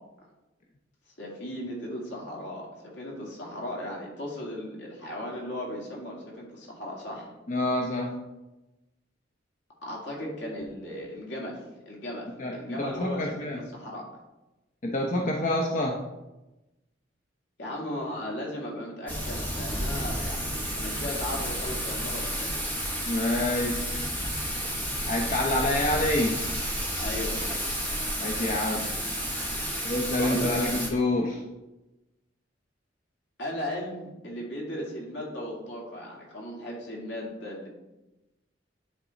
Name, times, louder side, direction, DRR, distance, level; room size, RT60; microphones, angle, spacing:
voice 1, 1.2-7.3 9.8-12.3 12.5-14.0 17.6-22.5 27.0-27.4 30.2-30.6 33.4-37.7, left 1 dB, 75° left, -3 dB, 2.2 m, -36 dB
voice 2, 7.5-8.1 12.4-13.6 14.8-16.0 23.1-24.1 25.1-26.4 28.2-28.9 29.8-31.4, left 1 dB, 40° left, 0 dB, 0.7 m, -27 dB
Thunder / Rain, 19.1-30.9, equal, 10° left, 1.3 m, -31 dB
10.0 x 3.7 x 4.0 m, 1.0 s
head